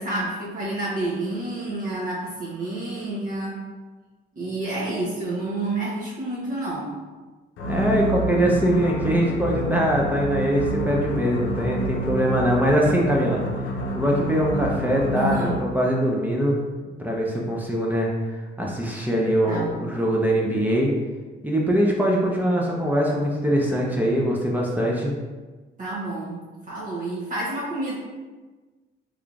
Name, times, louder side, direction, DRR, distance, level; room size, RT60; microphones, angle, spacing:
voice 1, 0.0-3.6 4.3-7.0 15.1-15.6 19.5-19.9 25.8-26.4 26.7-28.0, right 2 dB, 40° right, -7 dB, 0.9 m, -29 dB
sound 1, 7.6-15.8, right 1 dB, 80° left, 0.6 m, -28 dB
voice 2, 7.7-13.4 13.9-16.6 17.0-20.9 21.4-25.1, equal, 10° right, -3 dB, 0.6 m, -22 dB
3.6 x 3.3 x 2.4 m, 1.3 s
cardioid pair, 90°, 20 cm